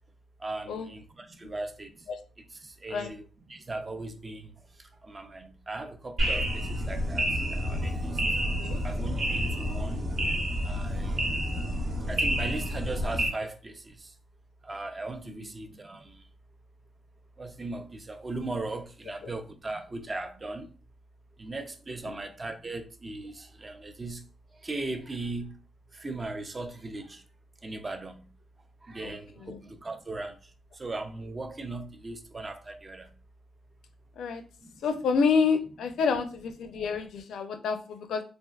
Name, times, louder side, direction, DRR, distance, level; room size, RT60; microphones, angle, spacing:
voice 1, 0.4-2.1 2.4-8.2 8.8-10.1 10.6-11.2 12.1-14.1 14.6-16.2 17.4-20.7 21.4-24.2 24.5-25.6 25.9-27.2 27.6-28.3 28.8-33.1 34.6-34.8 36.7-36.9, right 2 dB, 25° right, 0.4 m, -38 dB
sound 1, 6.2-13.3, equal, 50° right, 0.9 m, -29 dB
voice 2, 34.8-38.2, left 5 dB, 80° left, 0.4 m, -28 dB
3.3 x 2.4 x 2.3 m
wide cardioid pair, 140°, 0 cm